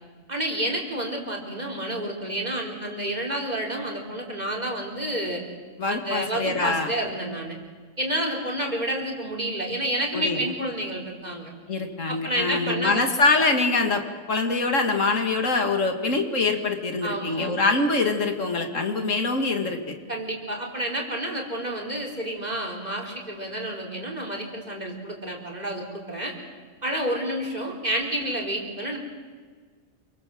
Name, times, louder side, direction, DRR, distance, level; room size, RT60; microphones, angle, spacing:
voice 1, 0.3-5.4 5.9-7.6 8.0-11.5 12.1-13.0 17.0-17.5 20.1-26.3 26.8-29.0, right 1 dB, 35° right, 0 dB, 4.5 m, -29 dB
voice 2, 5.8-6.9 10.1-10.4 11.7-14.0 14.3-19.9, left 3 dB, 80° left, 4 dB, 2.8 m, -24 dB
28.5 x 24.0 x 7.9 m, 1.5 s
omnidirectional pair, 1.3 m